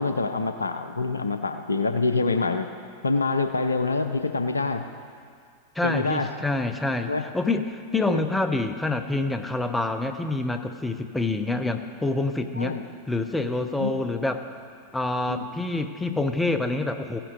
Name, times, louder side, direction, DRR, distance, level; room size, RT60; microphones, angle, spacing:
voice 1, 0.0-2.7 3.0-4.8 5.8-6.3 7.1-7.2 8.1-8.2 12.6-12.8 13.8-14.0 15.3-15.5, left 3 dB, 75° left, 8 dB, 0.6 m, -26 dB
voice 2, 5.8-12.8 13.1-14.4 14.9-17.2, left 2 dB, 10° left, 7 dB, 0.7 m, -27 dB
15.5 x 10.0 x 4.0 m, 2.2 s
figure-of-eight pair, 90°, 0 cm